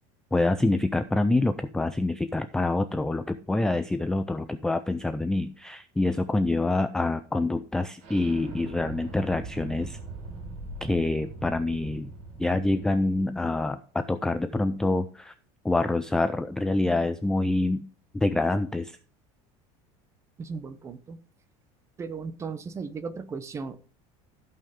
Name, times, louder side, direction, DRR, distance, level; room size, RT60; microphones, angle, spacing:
voice 1, 0.3-10.0 10.8-12.1 12.4-15.3 15.6-17.9 18.1-19.0, left 2 dB, 5° left, 10 dB, 0.3 m, -26 dB
Explosion, 8.0-13.5, right 3 dB, 60° right, 4.6 m, -41 dB
voice 2, 20.4-21.2 22.0-23.8, right 5 dB, 20° right, 12 dB, 0.8 m, -36 dB
15.0 x 5.5 x 3.6 m, 0.41 s
cardioid pair, 160°, 14 cm